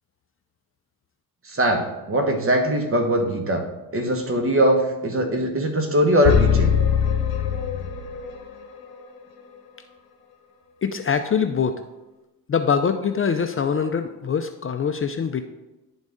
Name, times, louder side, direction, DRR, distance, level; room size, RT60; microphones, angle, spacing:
voice 1, 1.4-3.6 3.9-6.7, equal, 35° right, 3 dB, 1.3 m, -21 dB
sound 1, 6.2-8.4, left 7 dB, 75° left, 1.0 m, -21 dB
voice 2, 10.8-11.8 12.5-15.4, left 6 dB, 35° left, 8 dB, 0.5 m, -23 dB
10.5 x 3.9 x 3.6 m, 1.0 s
cardioid pair, 85°, 37 cm